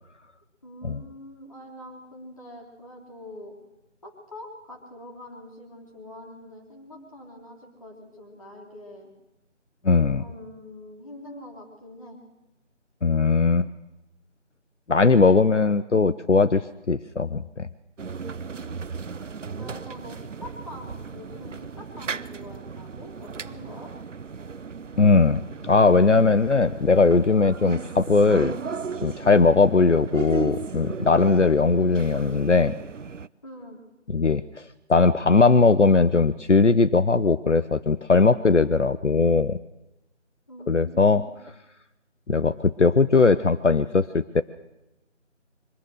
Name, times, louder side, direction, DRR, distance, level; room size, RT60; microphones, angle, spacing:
voice 1, 0.6-3.6 4.0-9.1 10.2-12.2 18.5-18.7 19.6-23.9 33.4-33.8 40.5-41.4, left 1 dB, 30° left, -1 dB, 3.5 m, -44 dB
voice 2, 9.8-10.2 13.0-13.7 14.9-17.7 25.0-28.6 29.0-32.7 34.1-34.6 34.9-39.6 40.7-41.2 42.3-44.4, left 4 dB, 70° left, 13 dB, 0.8 m, -19 dB
sound 1, 18.0-33.3, right 5 dB, 80° right, 0.6 m, -36 dB
23.0 x 19.0 x 6.5 m, 0.94 s
figure-of-eight pair, 170°, 37 cm